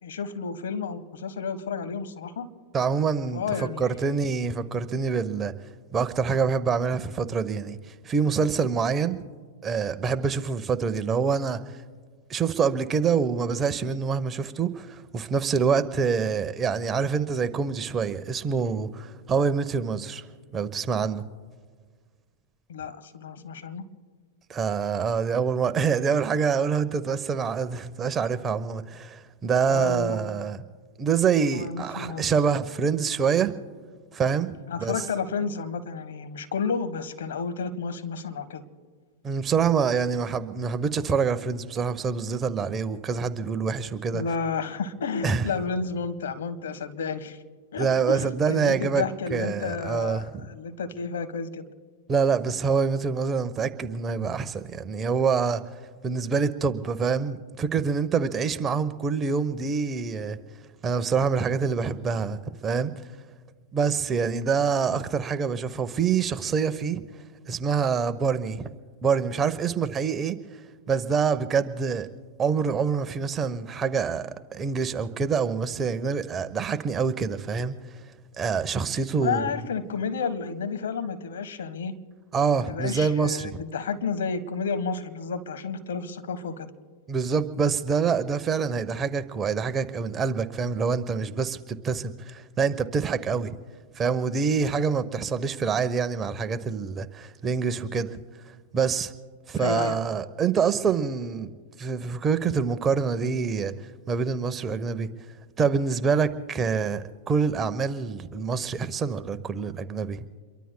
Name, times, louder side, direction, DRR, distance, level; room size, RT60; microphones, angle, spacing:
voice 1, 0.0-2.5 3.3-4.1 22.7-23.8 29.7-30.2 31.5-32.3 34.7-38.6 44.1-47.4 47.7-51.7 64.9-65.0 79.2-81.9 82.6-86.7 99.6-100.0, left 5 dB, 80° left, 1.3 m, -31 dB
voice 2, 2.7-5.5 5.9-9.2 9.6-11.6 12.3-20.3 20.5-21.2 24.5-30.6 31.0-33.5 34.1-35.0 39.2-44.2 45.2-45.5 47.8-50.5 52.1-55.6 56.0-60.4 60.8-62.9 63.7-67.0 67.5-68.7 69.0-70.6 70.9-72.1 72.4-77.8 78.4-79.6 82.3-83.6 87.1-93.5 93.9-98.2 98.7-99.1 99.5-101.5 101.8-103.7 104.1-105.1 105.6-110.3, right 6 dB, 25° right, 0.9 m, -26 dB
28.0 x 23.0 x 2.2 m
hypercardioid pair, 110°, 0 cm